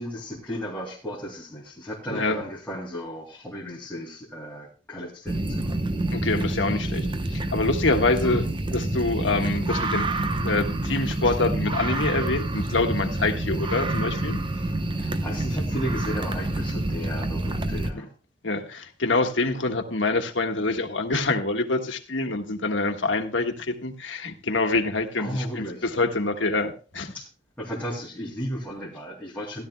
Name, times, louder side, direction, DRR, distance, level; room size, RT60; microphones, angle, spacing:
voice 1, 0.0-5.8 8.2-8.4 11.2-11.4 14.5-18.1 25.2-25.9 27.1-27.3 27.6-29.7, equal, 10° left, -6 dB, 2.6 m, -34 dB
voice 2, 2.1-2.4 6.1-8.4 8.7-10.1 10.4-14.4 17.9-18.0 18.4-27.1, left 3 dB, 90° left, 5 dB, 1.5 m, -26 dB
sound 1, 5.3-17.9, right 2 dB, 25° right, 0.8 m, -27 dB
16.5 x 12.0 x 2.2 m, 0.36 s
head